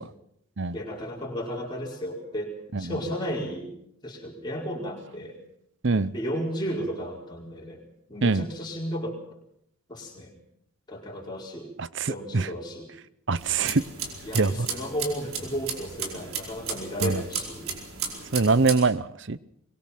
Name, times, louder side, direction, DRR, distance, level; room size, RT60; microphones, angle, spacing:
voice 1, 0.7-2.5 2.8-3.7 4.0-5.4 6.1-7.8 8.1-9.2 9.9-10.3 10.9-11.7 12.1-12.9 13.3-13.4 14.2-17.7, equal, 20° left, -2 dB, 4.8 m, -33 dB
voice 2, 11.8-12.5 13.3-13.8 14.3-14.7 17.0-17.2 18.3-19.4, right 3 dB, 55° right, 17 dB, 0.8 m, -24 dB
sound 1, 13.4-18.8, right 6 dB, 75° right, 4.7 m, -35 dB
24.0 x 21.5 x 6.0 m, 0.76 s
head